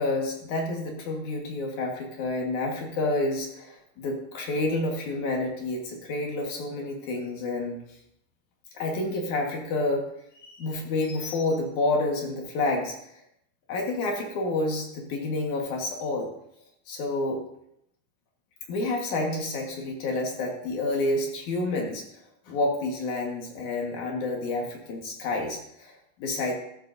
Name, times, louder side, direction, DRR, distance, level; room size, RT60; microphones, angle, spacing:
voice 1, 0.0-7.8 8.7-10.0 10.3-13.0 13.7-16.3 16.9-17.4 18.7-22.1 22.5-26.5, left 2 dB, 70° left, 0 dB, 3.0 m, -29 dB
14.0 x 13.0 x 2.7 m, 0.76 s
omnidirectional pair, 3.6 m